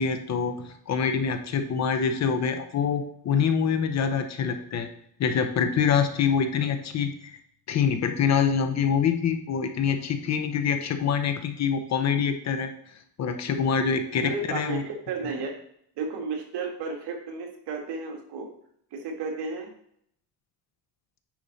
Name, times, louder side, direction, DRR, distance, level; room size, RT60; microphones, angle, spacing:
voice 1, 0.0-4.9 5.2-7.4 7.7-12.7 13.2-14.8, left 6 dB, 40° left, 7 dB, 0.7 m, -25 dB
voice 2, 14.2-15.5 16.0-18.5 18.9-19.7, right 4 dB, 70° right, 2 dB, 2.0 m, -33 dB
9.6 x 4.7 x 4.0 m, 0.70 s
cardioid pair, 145°, 42 cm